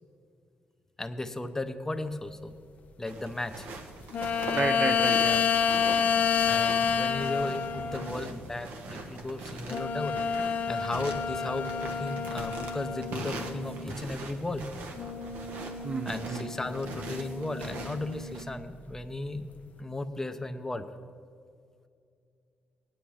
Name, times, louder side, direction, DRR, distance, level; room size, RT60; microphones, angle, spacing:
voice 1, 1.0-2.5 3.0-3.7 6.4-10.2 10.7-14.6 16.1-19.5 19.8-20.9, left 2 dB, 15° left, 0.7 m, -35 dB
sound 1, 3.1-18.4, right 2 dB, 85° right, 1.3 m, -42 dB
sound 2, 4.1-8.4 9.7-14.0 14.9-18.5 19.0-19.1, left 6 dB, 60° left, 0.6 m, -29 dB
voice 2, 4.5-5.6 15.8-16.5, right 4 dB, 35° right, 0.3 m, -32 dB
17.5 x 10.0 x 3.2 m
cardioid pair, 100°, 3 cm